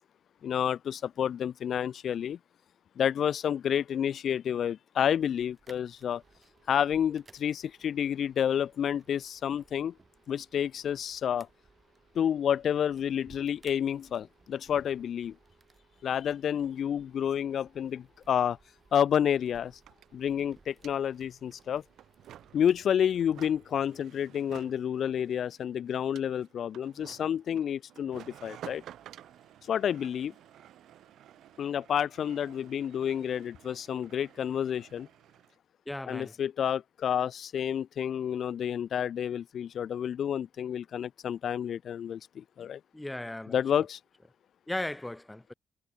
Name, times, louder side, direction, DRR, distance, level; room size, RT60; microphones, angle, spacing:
voice 1, 0.4-2.4 3.0-6.2 6.7-9.9 10.3-11.5 12.2-15.3 16.0-18.6 18.9-19.7 20.1-21.8 22.5-28.8 29.7-30.3 31.6-35.1 36.1-42.8 43.5-44.0, left 9 dB, 60° left, 0.4 m, -29 dB
sound 1, 5.2-23.9, right 4 dB, 30° right, 3.2 m, -63 dB
sound 2, 6.0-23.0, right 6 dB, 45° right, 7.4 m, -69 dB
sound 3, 18.7-18.8 18.9-35.6, right 11 dB, 75° right, 3.1 m, -53 dB
voice 2, 35.9-36.3 42.6-42.7 42.9-43.9 44.7-45.5, left 1 dB, 10° left, 0.6 m, -37 dB
cardioid pair, 90°, 0 cm